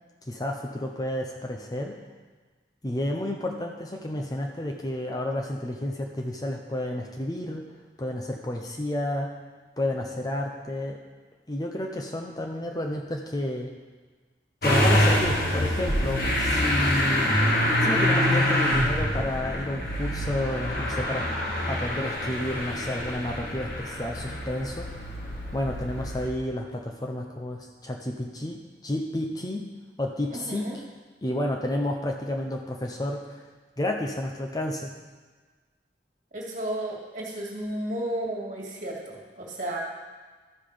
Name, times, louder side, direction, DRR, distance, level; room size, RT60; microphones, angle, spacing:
voice 1, 0.3-2.0 2.8-7.7 8.0-9.3 9.8-11.0 11.5-13.7 14.6-17.4 17.8-21.3 21.7-24.9 25.5-29.6 30.0-30.7 31.2-33.4 33.8-34.9, left 1 dB, 20° left, 2 dB, 0.6 m, -31 dB
Motor vehicle (road) / Engine starting, 14.6-26.2, left 1 dB, 55° left, 1.8 m, -25 dB
voice 2, 30.3-30.8 36.3-39.8, right 1 dB, 45° right, -3 dB, 2.0 m, -33 dB
12.0 x 5.7 x 5.0 m, 1.4 s
head